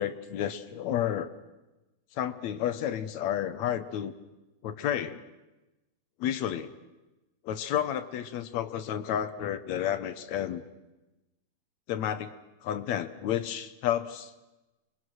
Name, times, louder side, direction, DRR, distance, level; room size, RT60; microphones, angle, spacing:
voice 1, 0.0-1.3 2.1-4.1 4.6-5.2 6.2-6.7 7.4-10.6 11.9-12.3 12.6-14.3, left 10 dB, 70° left, 11 dB, 2.2 m, -31 dB
27.5 x 22.5 x 6.4 m, 1.0 s
omnidirectional pair, 3.4 m